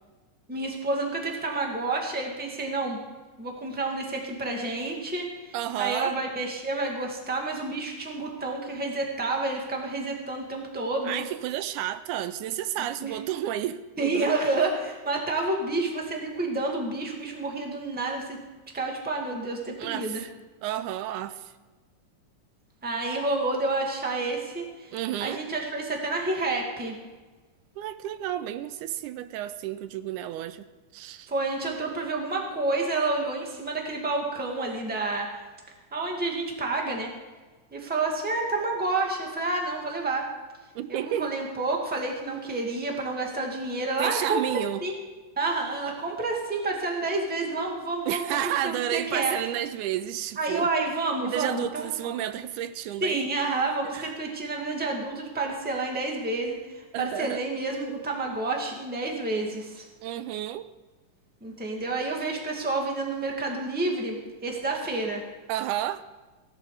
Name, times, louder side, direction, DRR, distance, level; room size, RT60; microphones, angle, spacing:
voice 1, 0.5-3.0 3.4-11.2 13.0-13.2 14.0-18.4 18.7-20.2 22.8-27.0 31.3-35.4 35.9-37.1 37.7-40.3 40.9-44.4 44.8-44.9 45.4-49.3 50.4-52.2 53.0-59.8 61.4-65.2, right 2 dB, 5° right, 1.3 m, -29 dB
voice 2, 5.5-6.1 11.0-14.3 19.8-20.3 20.6-21.5 24.9-25.4 27.8-30.7 30.9-31.3 40.8-41.3 44.0-44.8 48.1-50.7 51.2-53.3 53.9-54.1 56.9-57.4 60.0-60.7 65.5-66.0, right 12 dB, 85° right, 2.0 m, -31 dB
16.5 x 11.5 x 4.9 m
omnidirectional pair, 3.5 m